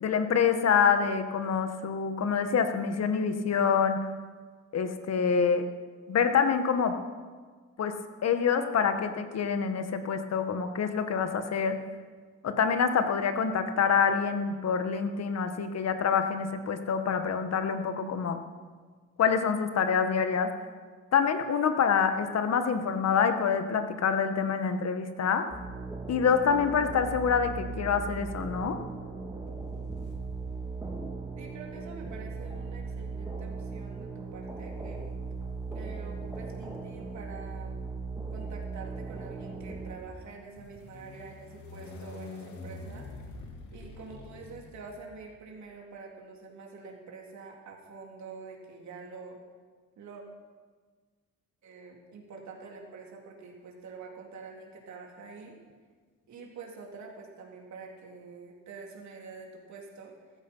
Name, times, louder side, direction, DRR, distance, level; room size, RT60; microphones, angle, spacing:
voice 1, 0.0-4.1 4.7-5.7 6.1-7.0 7.8-11.8 12.4-18.4 19.2-20.5 21.1-25.5 26.1-28.8, left 6 dB, 60° left, 8 dB, 1.6 m, -26 dB
sound 1, 25.5-39.9, right 4 dB, 10° right, 3.3 m, -38 dB
sound 2, 30.0-30.7 31.8-45.5, left 3 dB, 75° left, 2.6 m, -49 dB
voice 2, 31.4-35.0 35.7-37.8 38.3-43.1 43.7-49.4 50.0-50.2 51.6-55.6 56.3-60.1, right 4 dB, 70° right, -1 dB, 3.7 m, -46 dB
15.0 x 14.5 x 5.6 m, 1.5 s
cardioid pair, 90°, 30 cm